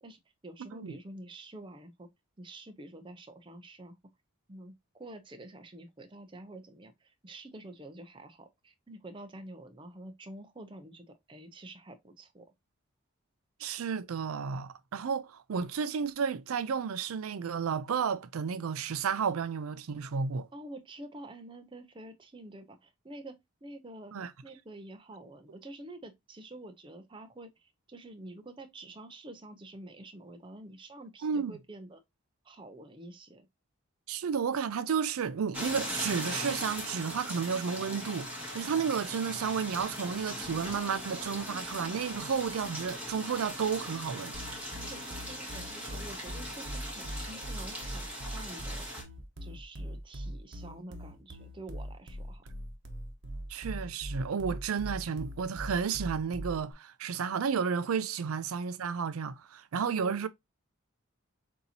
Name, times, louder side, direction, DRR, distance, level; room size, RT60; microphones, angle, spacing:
voice 1, 0.0-2.1 2.4-4.0 4.5-12.5 20.5-24.1 24.4-32.0 32.4-33.5 44.7-48.9 49.4-52.4 60.0-60.1, right 1 dB, 25° right, 0.5 m, -48 dB
voice 2, 13.6-20.5 24.1-24.3 31.2-31.5 34.1-44.4 53.5-60.3, right 6 dB, 90° right, 0.4 m, -32 dB
sound 1, 35.5-49.0, equal, 5° right, 1.7 m, -40 dB
sound 2, 44.3-56.7, equal, 55° right, 0.9 m, -41 dB
6.6 x 2.8 x 2.7 m
head